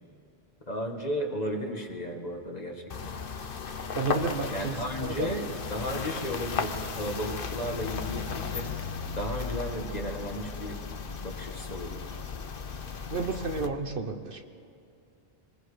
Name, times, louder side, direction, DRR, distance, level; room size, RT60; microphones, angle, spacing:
voice 1, 0.7-3.1 4.5-8.9 9.1-10.8 11.2-12.2, equal, 40° left, 2 dB, 2.0 m, -34 dB
sound 1, 2.9-13.7, left 5 dB, 55° left, 1.1 m, -35 dB
voice 2, 3.9-5.3 13.1-14.4, right 4 dB, 60° right, 7 dB, 1.2 m, -32 dB
26.0 x 20.5 x 5.1 m, 2.5 s
omnidirectional pair, 1.1 m